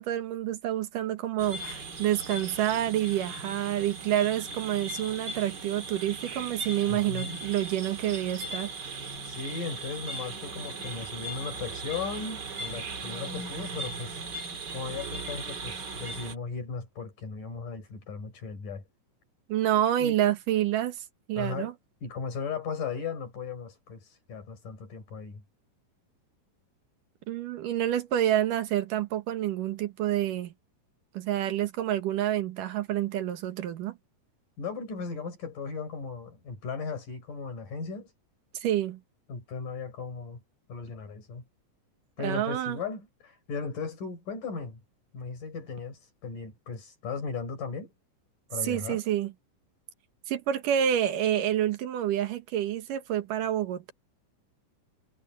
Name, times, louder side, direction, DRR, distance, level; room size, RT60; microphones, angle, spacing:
voice 1, 0.0-8.7 19.5-21.7 27.3-30.5 31.1-34.0 38.5-39.0 42.2-42.8 48.6-49.3 50.3-53.9, right 11 dB, 85° right, 3.0 m, -28 dB
sound 1, 1.4-16.4, right 3 dB, 40° right, 2.2 m, -38 dB
voice 2, 6.9-7.4 9.2-14.3 14.7-18.8 20.0-20.2 21.4-21.7 22.0-25.4 34.6-38.1 39.3-40.4 40.7-41.4 42.2-44.8 45.1-47.9 48.5-49.0, left 5 dB, 80° left, 6.8 m, -37 dB
omnidirectional pair, 3.7 m